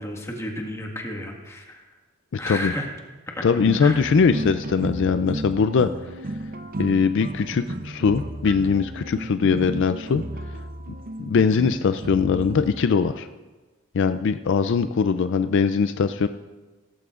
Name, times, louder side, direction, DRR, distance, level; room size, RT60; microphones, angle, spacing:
voice 1, 0.0-1.8 2.4-2.9 3.3-3.5 3.8-4.1, left 1 dB, 15° left, 1 dB, 1.6 m, -32 dB
voice 2, 3.4-5.9 6.8-10.2 11.2-13.3 13.9-16.3, left 5 dB, 60° left, 10 dB, 0.4 m, -21 dB
sound 1, 3.6-12.8, right 1 dB, 45° right, 0.6 m, -33 dB
17.0 x 14.5 x 2.5 m, 1.2 s
head